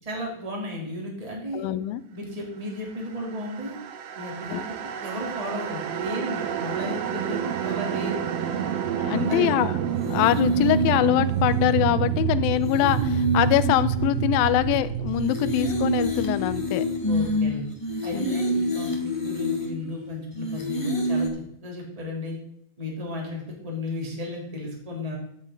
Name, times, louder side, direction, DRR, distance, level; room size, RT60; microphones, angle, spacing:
voice 1, 0.0-1.7 2.1-3.8 4.1-4.6 5.0-8.2 9.1-9.5 17.0-17.7 18.0-22.4 22.8-25.2, left 1 dB, 10° right, -2 dB, 2.9 m, -34 dB
voice 2, 1.5-2.0 4.5-4.6 9.0-9.7 10.1-16.8 18.1-18.3, left 14 dB, 90° left, 13 dB, 2.4 m, -24 dB
sound 1, 3.2-18.4, right 10 dB, 80° right, 1.4 m, -29 dB
sound 2, 9.1-21.3, left 1 dB, 20° left, 0.8 m, -28 dB
13.0 x 9.4 x 3.9 m, 0.71 s
omnidirectional pair, 4.1 m